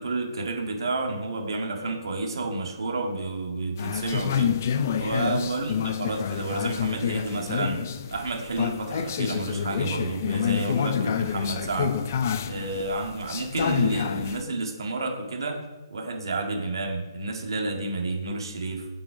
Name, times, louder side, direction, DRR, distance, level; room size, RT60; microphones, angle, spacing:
voice 1, 0.0-4.6 5.0-7.8 8.1-12.0 12.5-15.6 15.9-18.9, right 2 dB, 70° right, 1 dB, 1.8 m, -30 dB
sound 1, 3.8-14.4, left 8 dB, 30° left, 0.4 m, -28 dB
6.3 x 6.1 x 5.0 m, 1.1 s
hypercardioid pair, 175°, 3 cm